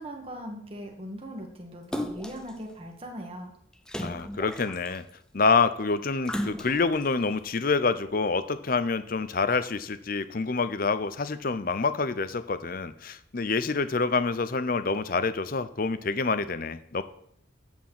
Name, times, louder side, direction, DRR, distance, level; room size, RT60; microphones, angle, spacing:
voice 1, 0.0-3.5, equal, 30° right, 1 dB, 1.9 m, -39 dB
Splash splatter, 1.9-2.5 3.9-5.1 6.2-7.0 7.6-7.7, equal, 5° left, 0.5 m, -34 dB
voice 2, 4.0-5.0 5.3-17.0, left 4 dB, 45° left, 13 dB, 0.6 m, -27 dB
13.0 x 4.5 x 7.7 m, 0.70 s
head